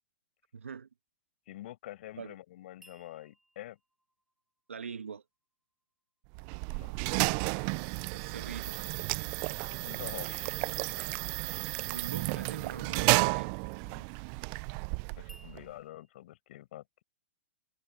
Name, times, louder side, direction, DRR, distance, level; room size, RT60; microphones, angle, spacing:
voice 1, 0.5-0.9 2.2-2.3 4.7-5.2 8.1-8.8 11.9-13.5, right 6 dB, 85° right, 1.6 m, -43 dB
voice 2, 1.5-3.8 6.7-6.9 9.7-10.6 13.9-14.0 15.2-17.0, left 14 dB, 60° left, 5.6 m, -46 dB
sound 1, 2.8-5.9 15.3-16.1, right 1 dB, 5° right, 7.3 m, -61 dB
sound 2, 6.3-15.6, right 31 dB, 40° right, 0.6 m, -32 dB
hypercardioid pair, 120°, 7 cm